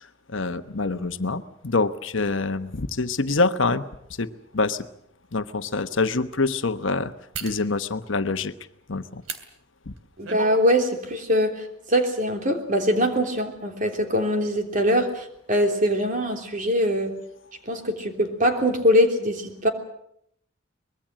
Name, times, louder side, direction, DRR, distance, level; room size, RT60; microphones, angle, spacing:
voice 1, 0.0-3.8 4.2-4.3 4.5-4.9 5.3-7.1 7.4-8.5 8.9-9.2 9.9-10.0, left 3 dB, 70° left, 10 dB, 1.1 m, -25 dB
sound 1, 4.5-4.6 5.2-5.4 7.3-7.6 9.2-9.4 10.0-10.6 11.0-11.1, right 5 dB, 85° right, 2.8 m, -34 dB
voice 2, 10.2-11.6 11.9-17.1 17.7-19.7, equal, 40° right, 4 dB, 3.4 m, -22 dB
24.0 x 21.0 x 7.5 m, 0.74 s
head